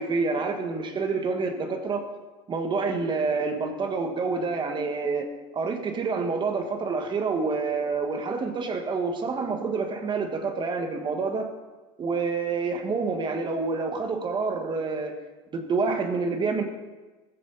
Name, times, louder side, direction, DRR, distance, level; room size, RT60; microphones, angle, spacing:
voice 1, 0.0-2.1 2.5-5.3 5.5-11.5 12.0-15.1 15.5-16.6, right 4 dB, 30° right, 5 dB, 1.7 m, -28 dB
15.0 x 13.5 x 4.1 m, 1.2 s
supercardioid pair, 115°, 15 cm